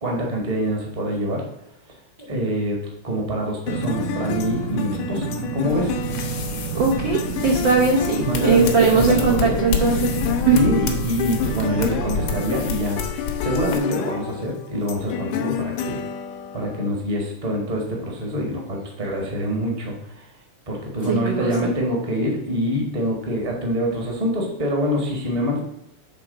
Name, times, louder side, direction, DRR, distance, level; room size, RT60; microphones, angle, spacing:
voice 1, 0.0-1.4 2.2-2.8 3.0-6.0 8.2-9.6 10.5-16.0 16.5-20.3 20.7-25.6, equal, 20° right, 0 dB, 1.0 m, -25 dB
sound 1, 3.7-16.9, left 8 dB, 85° left, 2.1 m, -30 dB
sound 2, 3.7-12.4, right 8 dB, 85° right, 2.2 m, -30 dB
sound 3, 5.7-13.8, left 6 dB, 65° left, 1.6 m, -30 dB
voice 2, 6.7-10.1 10.5-10.6 21.1-21.7, right 5 dB, 65° right, -2 dB, 1.2 m, -19 dB
7.5 x 3.7 x 5.2 m, 0.85 s
omnidirectional pair, 3.6 m